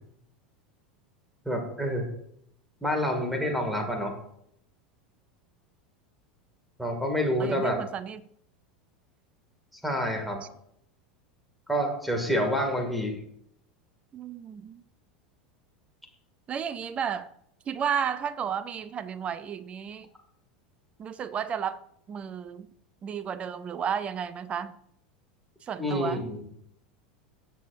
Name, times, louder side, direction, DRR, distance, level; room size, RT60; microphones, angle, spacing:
voice 1, 1.5-2.1 2.8-4.1 6.8-7.8 9.8-10.4 11.7-13.1 25.8-26.4, equal, ahead, 2 dB, 2.4 m, -28 dB
voice 2, 7.4-8.2 14.1-14.8 16.5-17.3 17.7-20.1 21.0-21.8 22.1-22.7 23.0-24.8 25.6-26.3, right 7 dB, 25° right, 15 dB, 0.6 m, -32 dB
18.5 x 7.1 x 2.7 m, 0.72 s
figure-of-eight pair, 80°, 5 cm